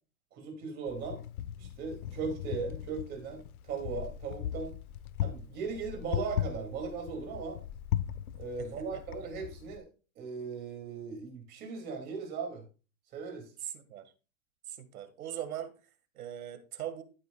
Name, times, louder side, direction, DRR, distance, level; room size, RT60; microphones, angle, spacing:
voice 1, 0.3-1.2 1.6-4.7 5.2-7.6 8.4-9.9 10.2-12.6 13.1-13.5, right 5 dB, 25° right, 2.5 m, -38 dB
Wind, 0.9-9.8, left 11 dB, 85° left, 0.9 m, -38 dB
voice 2, 8.6-9.0 13.6-14.1 14.7-15.7 16.2-17.0, right 11 dB, 90° right, 1.9 m, -40 dB
13.5 x 8.1 x 2.3 m
supercardioid pair, 170°, 42 cm